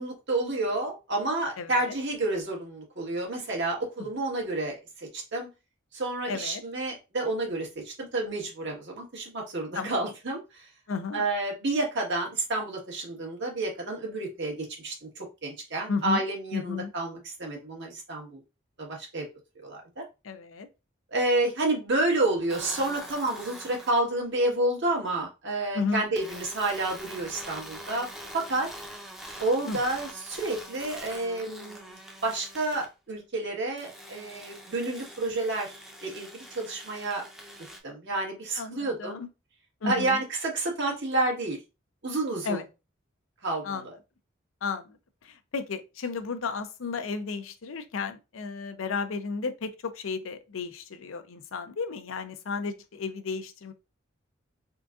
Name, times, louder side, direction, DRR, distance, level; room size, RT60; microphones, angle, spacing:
voice 1, 0.0-5.5 5.9-10.7 11.1-18.4 18.8-19.3 19.6-20.0 21.1-28.1 28.3-28.7 29.4-32.0 32.2-36.3 36.5-37.3 37.8-39.2 39.8-41.6 42.0-42.6 43.4-43.9, right 2 dB, 65° right, 1.5 m, -30 dB
voice 2, 1.6-2.0 6.3-6.6 9.7-10.1 10.9-11.3 15.9-16.2 16.5-16.9 20.2-20.7 25.7-26.0 29.7-29.8 38.6-39.3 39.8-40.2 42.4-42.6 43.6-43.8 44.6-45.0 45.2-53.7, left 4 dB, 85° left, 0.6 m, -33 dB
sound 1, 22.5-24.0 26.1-32.9 33.8-37.8, equal, ahead, 0.6 m, -44 dB
3.8 x 3.6 x 2.4 m
head